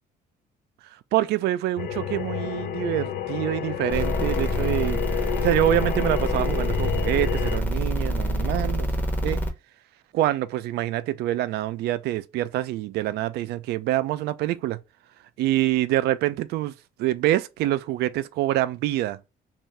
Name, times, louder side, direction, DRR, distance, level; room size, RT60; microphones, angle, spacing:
voice 1, 1.1-5.0 5.4-8.9 9.2-9.4 10.1-14.8 15.4-16.7 17.0-19.2, right 14 dB, 75° right, 0.4 m, -25 dB
sound 1, 1.8-7.6, left 11 dB, 65° left, 0.4 m, -29 dB
sound 2, 3.9-9.5, equal, 10° left, 0.8 m, -26 dB
2.6 x 2.4 x 3.1 m
cardioid pair, 110°, 17 cm